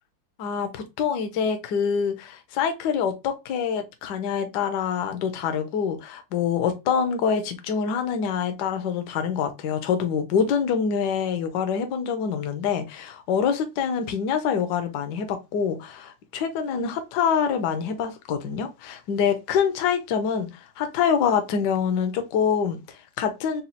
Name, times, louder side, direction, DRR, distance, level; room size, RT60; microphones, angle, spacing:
voice 1, 0.4-23.6, left 7 dB, 70° left, 1.2 m, -25 dB
4.2 x 2.2 x 4.0 m
omnidirectional pair, 2.1 m